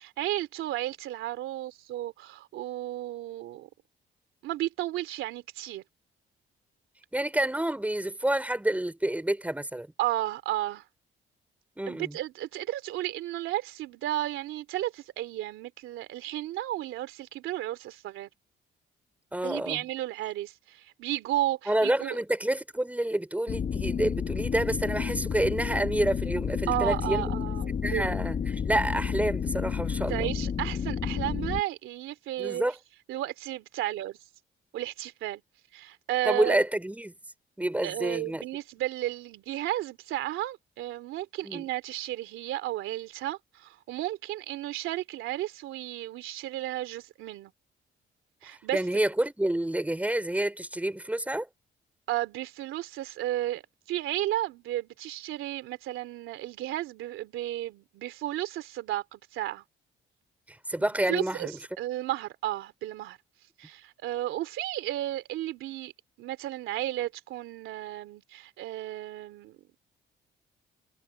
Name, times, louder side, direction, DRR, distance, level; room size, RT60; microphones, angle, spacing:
voice 1, 0.0-3.7 4.4-5.8 10.0-10.8 11.9-18.3 19.4-22.2 26.7-28.1 30.1-32.6 33.1-34.2 34.7-35.4 35.7-36.6 37.8-47.5 48.4-48.8 52.1-53.6 53.9-59.6 60.8-61.5 61.8-63.2 63.6-65.9 66.2-69.6, right 14 dB, 90° right, 2.9 m, -33 dB
voice 2, 7.1-9.9 11.8-12.2 19.3-19.8 21.7-27.3 27.8-30.3 32.4-32.7 36.2-37.1 37.6-38.4 41.4-41.6 48.7-51.5 60.5-61.6, right 1 dB, 5° right, 5.1 m, -28 dB
sound 1, 23.5-31.6, left 7 dB, 45° left, 1.1 m, -31 dB
cardioid pair, 90°, 20 cm